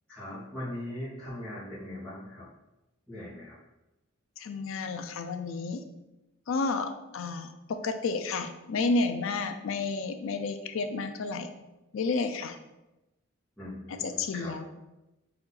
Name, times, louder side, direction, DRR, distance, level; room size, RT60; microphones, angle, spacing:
voice 1, 0.1-2.5 3.1-3.6 13.6-14.5, left 1 dB, 5° left, -15 dB, 1.2 m, -40 dB
voice 2, 4.4-5.8 6.5-11.5 11.9-12.6 13.9-14.6, left 3 dB, 80° left, 8 dB, 0.4 m, -31 dB
4.2 x 2.7 x 3.8 m, 0.99 s
head